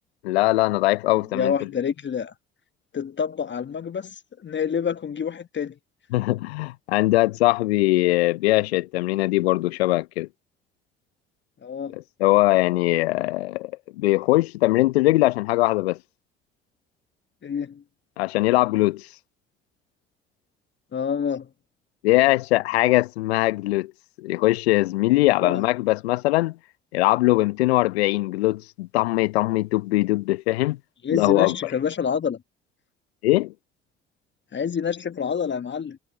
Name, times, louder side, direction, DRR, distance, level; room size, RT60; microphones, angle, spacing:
voice 1, 0.2-1.5 6.1-10.3 11.9-13.7 14.0-16.0 18.2-19.1 22.0-23.9 24.2-26.5 26.9-30.8 31.1-31.7 33.2-33.5, left 19 dB, 80° left, 1.0 m, -21 dB
voice 2, 1.3-2.3 2.9-5.8 11.6-12.0 17.4-17.8 20.9-21.5 25.4-25.7 31.0-32.4 34.5-36.0, left 7 dB, 35° left, 1.3 m, -27 dB
figure-of-eight pair, 50°, 31 cm